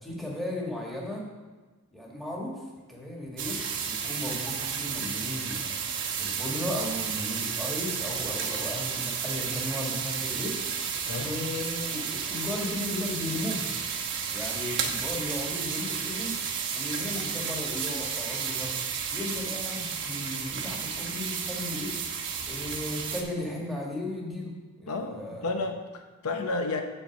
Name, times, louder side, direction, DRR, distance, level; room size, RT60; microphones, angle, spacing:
voice 1, 0.0-1.3 1.9-2.6 2.9-3.6 3.9-5.8 6.2-10.5 11.1-13.7 14.3-16.4 16.7-18.8 19.1-21.9 22.4-25.4, left 1 dB, ahead, -2 dB, 1.5 m, -35 dB
sound 1, 3.4-23.2, right 6 dB, 55° right, 1.1 m, -32 dB
voice 2, 24.9-26.8, left 3 dB, 75° left, 5 dB, 0.8 m, -32 dB
8.9 x 4.3 x 7.0 m, 1.3 s
head